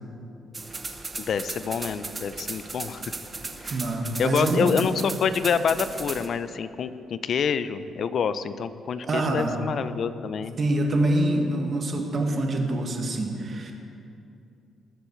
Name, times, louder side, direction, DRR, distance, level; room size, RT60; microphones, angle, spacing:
sound 1, 0.5-6.3, right 3 dB, 30° right, 1.0 m, -37 dB
voice 1, 1.2-3.0 4.2-10.5, left 6 dB, 60° left, 13 dB, 0.5 m, -27 dB
voice 2, 3.7-4.9 9.0-9.6 10.6-13.7, right 2 dB, 45° right, 2 dB, 1.7 m, -25 dB
19.5 x 7.1 x 4.5 m, 2.6 s
cardioid pair, 90°, 0 cm